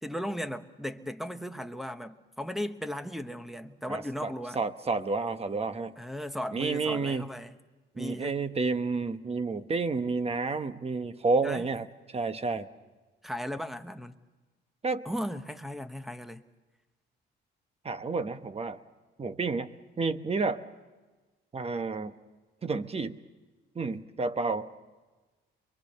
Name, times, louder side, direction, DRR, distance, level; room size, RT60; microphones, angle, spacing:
voice 1, 0.0-4.6 6.0-7.5 8.0-8.3 11.4-11.7 13.2-14.2 15.0-16.4, equal, ahead, 1.1 m, -36 dB
voice 2, 3.9-6.0 6.5-7.3 8.0-12.7 14.8-15.0 17.8-18.8 19.2-19.7 20.0-20.6 21.5-22.1 22.6-23.2 23.7-24.7, right 4 dB, 30° right, 1.1 m, -30 dB
23.5 x 23.0 x 6.8 m
cardioid pair, 90°, 20 cm